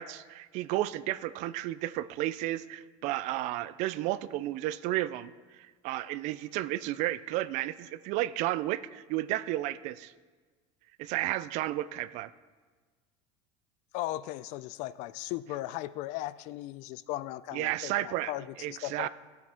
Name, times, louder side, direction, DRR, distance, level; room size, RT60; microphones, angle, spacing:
voice 1, 0.0-5.3 5.6-10.1 11.0-12.3 17.5-18.3 18.6-19.1, right 15 dB, 55° right, 16 dB, 0.4 m, -32 dB
voice 2, 13.9-19.1, left 15 dB, 55° left, 17 dB, 0.4 m, -37 dB
16.0 x 7.5 x 3.5 m, 1.4 s
supercardioid pair, 135°, 14 cm